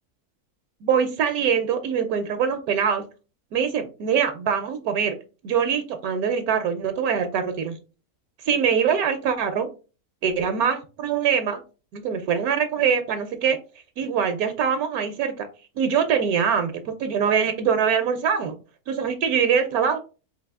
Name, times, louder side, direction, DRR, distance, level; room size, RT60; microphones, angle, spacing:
voice 1, 0.8-3.0 3.5-5.1 5.4-7.7 8.4-9.7 10.2-11.6 11.9-13.6 14.0-15.5 15.8-18.6 18.9-20.0, right 7 dB, 75° right, 7 dB, 1.0 m, -23 dB
3.9 x 2.6 x 3.5 m, 0.33 s
omnidirectional pair, 1.6 m